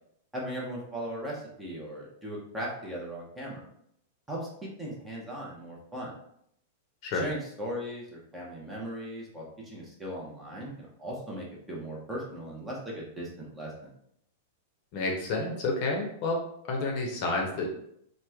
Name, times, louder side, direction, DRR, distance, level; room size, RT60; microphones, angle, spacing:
voice 1, 0.3-3.7 4.3-6.1 7.1-13.9, equal, 10° right, -4 dB, 0.7 m, -38 dB
voice 2, 14.9-16.4 16.7-17.7, left 2 dB, 40° left, 0 dB, 0.7 m, -29 dB
3.0 x 2.1 x 3.4 m, 0.71 s
supercardioid pair, 155°, 0 cm